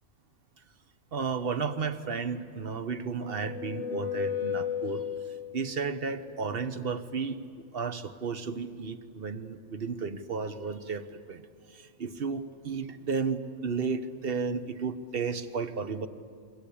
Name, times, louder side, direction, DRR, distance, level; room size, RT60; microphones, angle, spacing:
voice 1, 1.1-5.1 5.5-16.1, right 5 dB, 45° right, 10 dB, 1.2 m, -33 dB
sound 1, 2.8-5.8, left 9 dB, 60° left, 1.2 m, -34 dB
29.0 x 23.5 x 8.6 m, 2.2 s
omnidirectional pair, 1.5 m